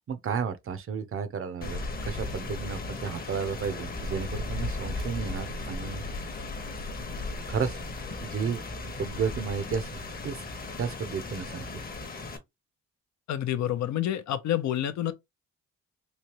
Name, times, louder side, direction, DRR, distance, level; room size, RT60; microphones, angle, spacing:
voice 1, 0.0-6.0 7.5-7.8 8.2-10.4 10.8-11.8, right 6 dB, 45° right, 0.7 m, -33 dB
Rain, 1.6-12.4, left 2 dB, 30° left, 0.9 m, -36 dB
voice 2, 13.3-15.1, left 11 dB, 65° left, 0.6 m, -28 dB
3.2 x 2.8 x 2.9 m
cardioid pair, 90°, 30 cm